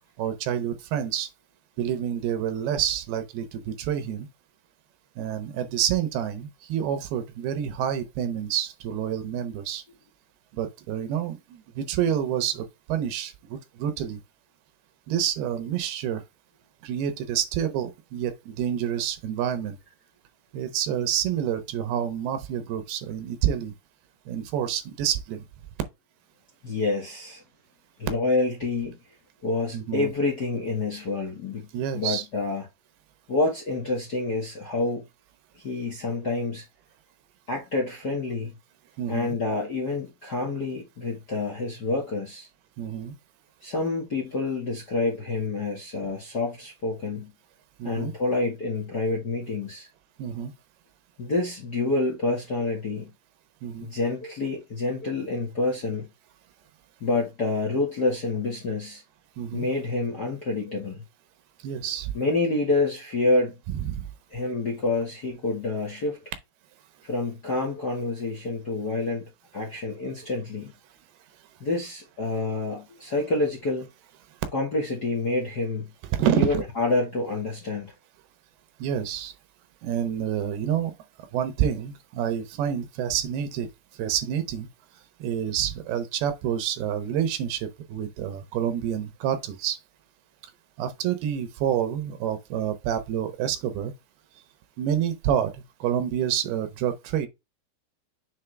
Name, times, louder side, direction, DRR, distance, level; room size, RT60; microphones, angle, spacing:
voice 1, 0.2-1.3 1.8-4.3 5.2-9.8 10.5-14.2 15.1-16.2 16.8-19.8 20.5-23.7 24.3-25.4 29.7-30.1 31.7-32.3 39.0-39.4 42.8-43.1 47.8-48.1 50.2-50.5 53.6-53.9 59.4-59.7 61.6-62.1 63.7-64.0 76.1-76.6 78.8-79.3 79.8-80.9 81.3-83.7 84.0-84.7 85.2-89.8 90.8-93.9 94.8-97.3, right 9 dB, 85° right, 3.0 m, -28 dB
voice 2, 26.6-27.4 28.0-29.0 29.4-31.7 31.9-32.7 33.3-35.0 35.6-36.6 37.5-38.5 39.1-42.5 43.6-47.3 47.8-49.9 51.2-53.1 53.8-56.1 57.0-59.0 59.5-61.0 62.1-63.5 64.3-66.2 67.0-70.7 71.6-73.9 74.5-75.9 76.3-77.9, left 3 dB, 45° left, 1.3 m, -28 dB
7.3 x 4.0 x 3.3 m
omnidirectional pair, 4.4 m